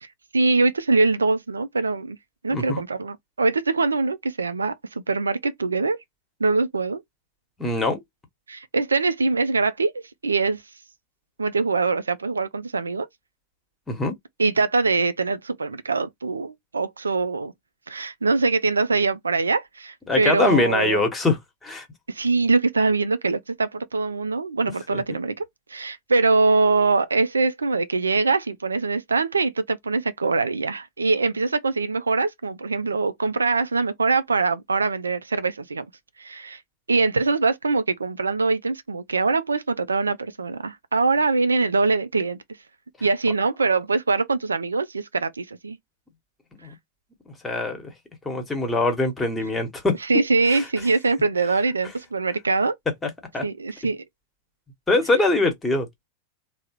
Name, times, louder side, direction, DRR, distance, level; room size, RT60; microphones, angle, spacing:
voice 1, 0.0-2.2 2.4-4.7 5.1-6.0 6.4-7.0 8.5-9.9 10.2-10.6 11.4-13.1 14.4-17.5 17.9-21.0 22.1-35.9 36.2-36.6 36.9-42.4 43.0-45.8 50.1-52.7 53.4-54.0, right 3 dB, 75° right, 0.3 m, -23 dB
voice 2, 2.5-2.8 7.6-8.0 13.9-14.1 20.1-21.9 24.9-25.0 46.6-46.7 47.4-47.8 48.2-50.0 50.5-50.6 53.0-53.4 54.9-55.9, left 2 dB, 10° left, 1.1 m, -23 dB
3.4 x 2.0 x 2.9 m
figure-of-eight pair, 90°, 0 cm